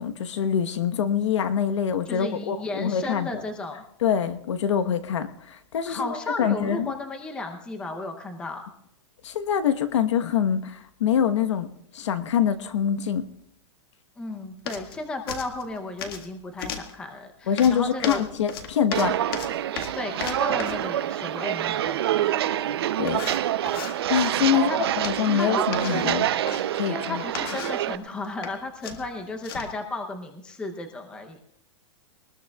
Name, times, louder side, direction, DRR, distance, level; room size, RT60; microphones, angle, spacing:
voice 1, 0.0-3.4 4.0-6.9 9.2-11.7 11.9-13.3 17.5-19.2 23.0-23.2 24.1-24.7 25.0-26.3 26.7-27.2, left 8 dB, 65° left, 8 dB, 1.2 m, -25 dB
voice 2, 2.1-3.8 5.9-8.6 14.2-18.2 19.7-22.3 24.5-24.8 25.3-25.6 26.9-31.4, left 2 dB, 5° left, 5 dB, 0.7 m, -34 dB
sound 1, 14.7-15.0 15.3-16.3 16.6-16.9 17.6-20.9 22.4-22.5 23.1-24.0 25.0-25.4 25.7-26.6 27.2-27.8 28.2-28.5 28.8-29.8, left 7 dB, 50° left, 1.7 m, -35 dB
Walk footsteps, 18.9-28.0, right 12 dB, 55° right, 0.6 m, -26 dB
23.0 x 20.0 x 2.4 m, 0.71 s
supercardioid pair, 180°, 16 cm